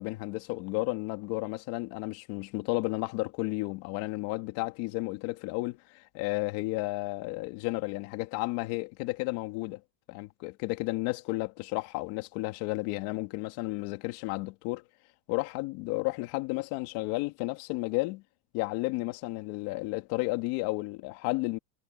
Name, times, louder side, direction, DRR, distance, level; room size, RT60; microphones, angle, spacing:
voice 1, 0.0-9.8 10.1-14.8 15.3-18.2 18.5-21.6, left 22 dB, 50° left, 2.5 m, -32 dB
supercardioid pair, 165°, 49 cm